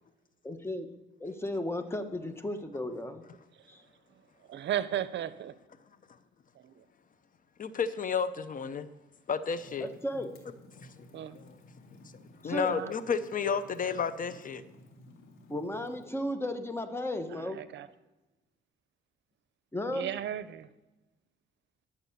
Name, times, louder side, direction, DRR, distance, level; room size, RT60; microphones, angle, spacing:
voice 1, 0.4-0.9 1.2-3.2 3.7-3.8 9.8-10.4 12.4-12.7 15.5-17.6 19.7-20.1, left 1 dB, 10° left, 8 dB, 1.2 m, -35 dB
voice 2, 4.5-5.5 6.6-6.8 11.1-11.4 12.7-12.9 17.3-17.9 19.9-20.7, right 11 dB, 65° right, 15 dB, 0.7 m, -35 dB
voice 3, 7.6-8.9 9.3-9.9 10.8-10.9 11.3-11.5 12.4-14.6, left 6 dB, 45° left, 14 dB, 0.7 m, -31 dB
Fire, 9.5-16.1, left 2 dB, 85° left, 2.2 m, -54 dB
11.5 x 7.0 x 6.8 m, 1.1 s
cardioid pair, 90°, 20 cm